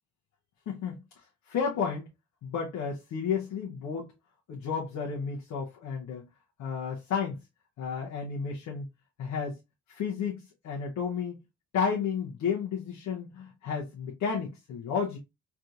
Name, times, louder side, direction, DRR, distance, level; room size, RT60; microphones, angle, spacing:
voice 1, 0.7-2.1 2.4-4.1 4.5-6.3 6.6-7.4 7.8-8.9 9.2-9.6 9.9-11.4 11.7-15.2, left 6 dB, 70° left, 0.8 m, -32 dB
3.4 x 2.8 x 2.4 m
cardioid pair, 90°, 30 cm